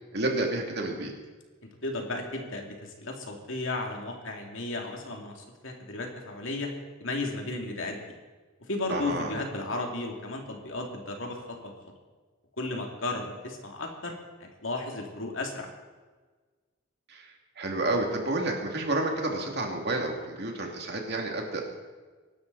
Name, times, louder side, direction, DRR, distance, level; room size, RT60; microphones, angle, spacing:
voice 1, 0.1-1.1 8.9-9.4 17.1-21.6, right 2 dB, 55° right, 1 dB, 2.6 m, -30 dB
voice 2, 1.8-6.7 7.0-8.0 8.6-11.7 12.6-14.1 14.4-15.7, left 2 dB, 70° left, 2 dB, 2.7 m, -34 dB
23.5 x 12.0 x 4.2 m, 1.4 s
head